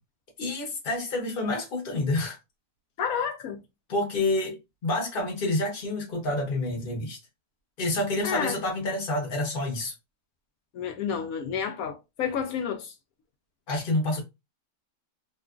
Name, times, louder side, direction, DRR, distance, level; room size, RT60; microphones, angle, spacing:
voice 1, 0.4-2.4 3.9-7.2 7.8-9.9 13.7-14.2, left 2 dB, 40° left, 0.9 m, -28 dB
voice 2, 3.0-3.6 8.2-8.6 10.7-12.9, left 7 dB, 70° left, 0.9 m, -30 dB
2.9 x 2.4 x 2.3 m
omnidirectional pair, 1.8 m